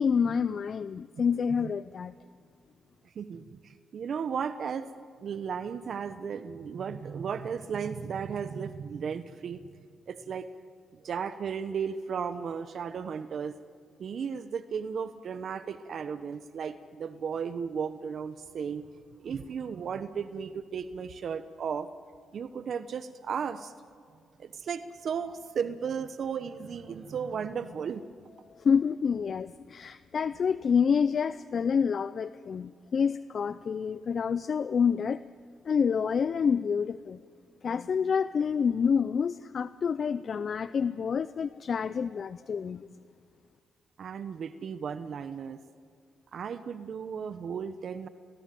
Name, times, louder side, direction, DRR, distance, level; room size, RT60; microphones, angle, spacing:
voice 1, 0.0-2.1 28.6-35.2 35.7-37.2 37.6-42.9, left 6 dB, 55° left, 15 dB, 0.5 m, -28 dB
voice 2, 3.1-4.9 5.2-9.7 10.1-10.5 10.9-13.5 14.0-18.8 19.2-21.9 22.3-23.7 24.4-28.0 44.0-45.6 46.3-48.1, right 6 dB, 65° right, 11 dB, 1.0 m, -35 dB
29.0 x 21.0 x 7.7 m, 2.2 s
supercardioid pair, 65°, 0 cm